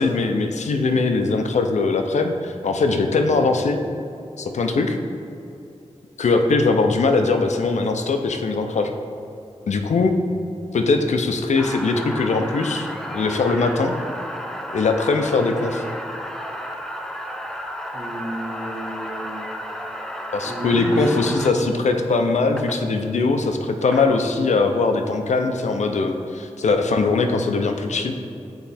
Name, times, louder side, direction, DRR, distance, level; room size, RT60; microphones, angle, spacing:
voice 1, 0.0-3.8 4.4-5.0 6.2-8.9 9.7-10.2 10.7-14.0 14.7-15.8 20.3-28.1, left 3 dB, 85° left, 5 dB, 0.5 m, -21 dB
sound 1, 11.5-21.5 22.6-22.7 23.7-24.1, equal, 5° left, 0.4 m, -33 dB
voice 2, 17.9-19.5 20.4-21.8, right 1 dB, 65° right, -5 dB, 1.3 m, -31 dB
8.0 x 3.2 x 4.2 m, 2.7 s
wide cardioid pair, 60°, 12 cm